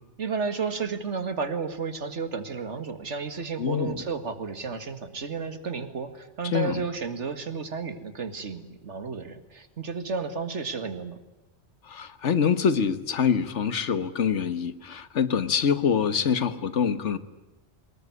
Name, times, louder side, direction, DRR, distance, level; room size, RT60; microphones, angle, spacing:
voice 1, 0.2-11.2, right 5 dB, 90° right, 10 dB, 2.3 m, -32 dB
voice 2, 3.6-4.0 6.4-6.8 11.9-17.2, left 7 dB, 85° left, 14 dB, 1.6 m, -25 dB
24.0 x 20.5 x 9.7 m, 1.0 s
omnidirectional pair, 1.2 m